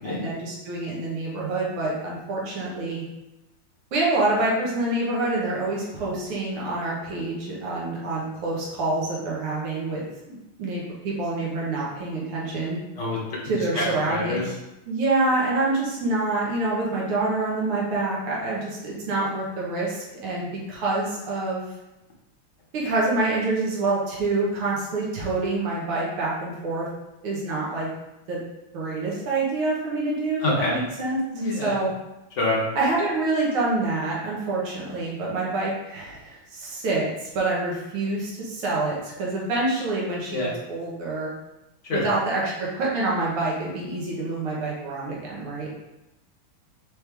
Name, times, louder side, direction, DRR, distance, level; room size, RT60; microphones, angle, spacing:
voice 1, 0.0-3.0 3.9-12.8 13.5-14.4 14.9-21.6 22.7-26.9 27.2-27.9 28.3-28.4 28.7-31.2 31.6-31.9 32.8-40.4 40.7-41.3 41.9-45.7, right 2 dB, 80° right, -5 dB, 2.0 m, -26 dB
voice 2, 13.0-13.4 13.7-13.8 14.1-14.4 30.4-30.8 31.3-31.8 32.4-32.6 40.3-40.5 41.8-42.1, left 2 dB, 55° left, -4 dB, 0.8 m, -26 dB
4.6 x 3.2 x 3.4 m, 0.96 s
omnidirectional pair, 2.4 m